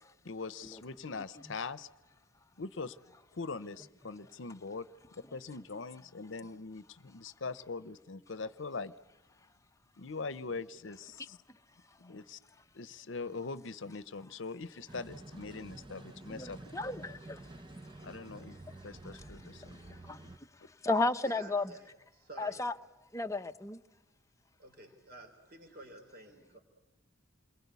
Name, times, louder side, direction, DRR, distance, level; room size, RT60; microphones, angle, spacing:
voice 1, 0.2-1.9 2.6-3.0 3.3-4.9 5.2-8.9 10.0-11.4 12.0-12.4 12.7-16.6 18.0-18.6 18.8-20.0, left 4 dB, 65° left, 0.8 m, -42 dB
sound 1, 14.9-20.4, right 2 dB, 25° right, 0.9 m, -50 dB
voice 2, 16.3-17.4 19.9-20.2 20.8-21.7 22.4-22.7 23.1-23.8, left 2 dB, 15° left, 0.8 m, -33 dB
voice 3, 21.2-22.7 24.6-26.6, right 2 dB, 50° right, 3.6 m, -52 dB
28.5 x 22.5 x 8.3 m
head